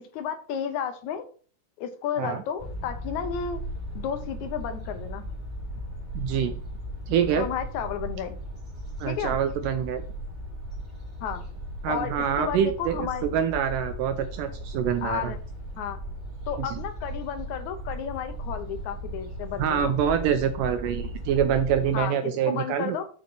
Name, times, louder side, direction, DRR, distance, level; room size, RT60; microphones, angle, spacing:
voice 1, 0.1-1.3 1.8-3.6 4.0-5.2 7.4-8.4 9.1-9.4 11.2-11.4 11.9-13.3 15.0-15.4 15.8-16.0 16.5-19.9 21.9-23.0, left 8 dB, 70° left, 8 dB, 1.8 m, -32 dB
sound 1, 2.6-22.0, equal, 25° right, 3.4 m, -37 dB
voice 2, 6.2-6.5 7.1-7.5 9.0-10.0 11.8-15.3 16.6-16.8 19.6-23.0, right 8 dB, 80° right, 8 dB, 2.0 m, -26 dB
7.1 x 5.1 x 5.6 m, 0.43 s
omnidirectional pair, 4.3 m